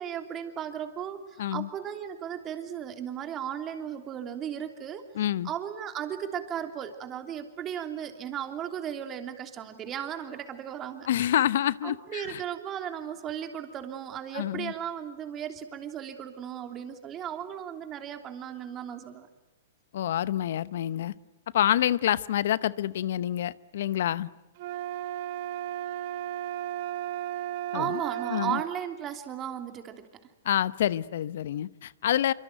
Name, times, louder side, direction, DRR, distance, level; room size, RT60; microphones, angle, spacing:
voice 1, 0.0-5.0 5.4-11.1 11.8-19.3 27.7-30.1, right 9 dB, 25° right, 6 dB, 3.1 m, -36 dB
voice 2, 1.4-1.7 5.1-5.5 11.1-12.4 14.3-14.7 19.9-21.1 21.5-24.3 27.7-28.0 28.3-28.6 30.4-32.3, left 11 dB, 65° left, 18 dB, 0.9 m, -27 dB
sound 1, 24.6-28.7, right 12 dB, 50° right, 1.1 m, -34 dB
26.0 x 24.5 x 9.3 m, 1.0 s
hypercardioid pair, 130°, 0 cm